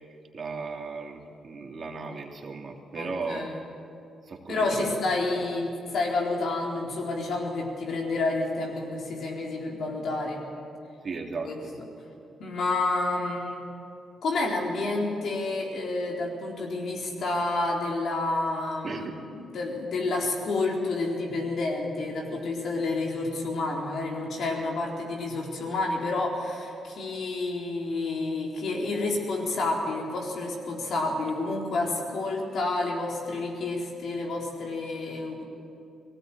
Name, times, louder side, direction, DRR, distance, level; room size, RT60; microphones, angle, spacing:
voice 1, 0.3-3.7 4.2-4.9 11.0-11.7 18.8-19.2, right 4 dB, 50° right, 2 dB, 2.8 m, -36 dB
voice 2, 2.9-3.6 4.5-10.4 11.4-11.6 12.4-13.6 14.2-19.1 19.3-35.4, left 2 dB, 65° left, -1 dB, 4.0 m, -29 dB
19.5 x 16.5 x 9.1 m, 2.5 s
supercardioid pair, 50°, 0 cm